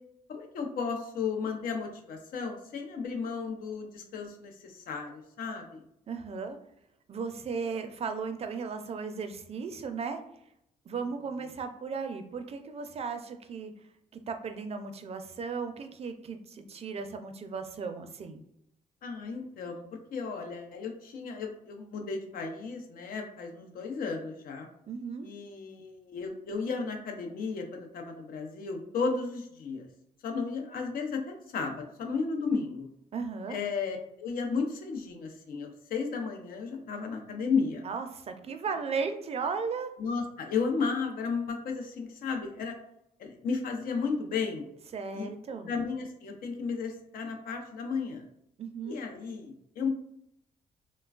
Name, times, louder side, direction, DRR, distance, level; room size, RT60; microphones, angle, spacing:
voice 1, 0.3-5.8 19.0-19.8 20.1-24.7 25.2-29.9 30.2-32.9 33.5-37.8 40.0-42.8 43.2-44.6 45.1-45.3 45.7-48.2 48.8-49.9, left 5 dB, 70° left, 2 dB, 0.6 m, -34 dB
voice 2, 6.1-6.6 7.1-10.2 10.9-13.7 14.1-18.4 24.9-25.3 33.1-33.6 37.8-39.9 44.9-45.7 48.6-49.0, right 5 dB, 40° right, 7 dB, 0.4 m, -36 dB
3.1 x 2.2 x 2.3 m, 0.76 s
cardioid pair, 85°, 15 cm